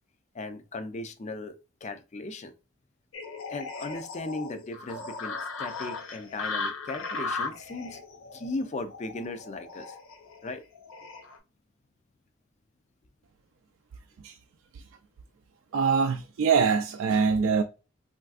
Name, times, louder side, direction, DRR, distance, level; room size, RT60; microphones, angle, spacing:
voice 1, 0.3-2.5 3.5-8.0 8.3-10.0 10.4-10.6, left 2 dB, 35° left, 0.4 m, -37 dB
sound 1, 3.1-11.4, left 3 dB, 90° left, 0.6 m, -37 dB
voice 2, 15.7-17.6, right 5 dB, 85° right, 0.3 m, -24 dB
3.2 x 2.5 x 2.4 m
head